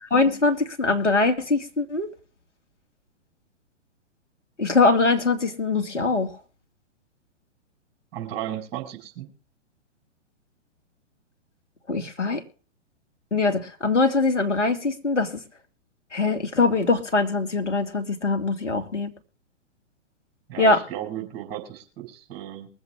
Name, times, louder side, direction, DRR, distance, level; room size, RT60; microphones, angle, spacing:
voice 1, 0.0-2.1 4.6-6.4 11.9-12.4 13.3-15.3 16.1-19.1 20.6-20.8, left 3 dB, 80° left, 5 dB, 2.3 m, -22 dB
voice 2, 8.1-9.3 20.5-22.7, right 11 dB, 25° right, 2 dB, 4.7 m, -34 dB
23.0 x 7.9 x 3.6 m, 0.40 s
figure-of-eight pair, 120°, 36 cm